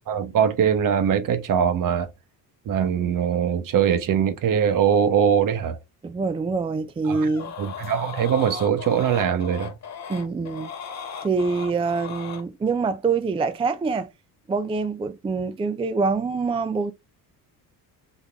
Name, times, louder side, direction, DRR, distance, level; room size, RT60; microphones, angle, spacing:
voice 1, 0.1-2.1 2.7-5.8 7.0-7.3 7.6-9.7, right 8 dB, 55° right, 1.0 m, -22 dB
voice 2, 6.0-7.5 10.1-10.7 11.2-14.1 14.5-16.9, right 4 dB, 15° right, 0.4 m, -25 dB
sound 1, 7.1-12.4, left 6 dB, 45° left, 1.5 m, -37 dB
4.0 x 3.7 x 3.4 m
cardioid pair, 110°, 38 cm